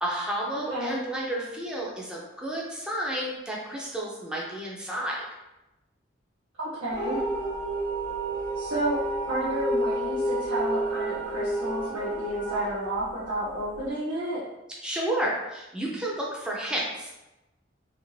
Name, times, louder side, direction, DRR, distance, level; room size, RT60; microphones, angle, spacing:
voice 1, 0.0-5.2 14.8-17.1, right 1 dB, 5° right, -4 dB, 0.4 m, -31 dB
voice 2, 6.6-7.2 8.5-9.0 9.3-14.4, right 1 dB, 90° right, -12 dB, 1.0 m, -31 dB
sound 1, 6.9-13.8, right 1 dB, 60° left, 0.6 m, -30 dB
2.5 x 2.5 x 3.1 m, 0.97 s
head